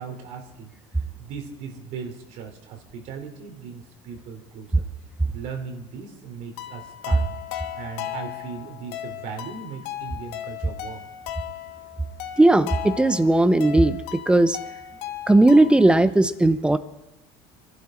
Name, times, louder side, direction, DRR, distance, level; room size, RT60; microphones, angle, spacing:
voice 1, 0.0-4.8 5.3-7.4 7.8-11.0, right 6 dB, 65° right, 4 dB, 3.3 m, -38 dB
sound 1, 6.6-16.0, left 12 dB, 80° left, 1.6 m, -36 dB
voice 2, 12.4-14.0 14.3-14.6 15.3-16.8, right 2 dB, 5° right, 13 dB, 0.8 m, -17 dB
25.5 x 11.5 x 4.4 m, 0.99 s
supercardioid pair, 115°, 13 cm